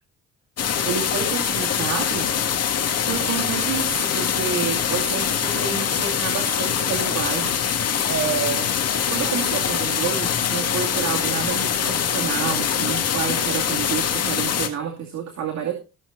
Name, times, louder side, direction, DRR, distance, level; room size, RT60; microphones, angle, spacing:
sound 1, 0.6-14.7, left 8 dB, 55° left, 1.9 m, -23 dB
voice 1, 0.8-2.3 3.1-7.6 8.1-8.7 9.1-15.7, right 7 dB, 65° right, 2 dB, 2.5 m, -29 dB
16.0 x 7.3 x 3.8 m, 0.31 s
cardioid pair, 90°, 30 cm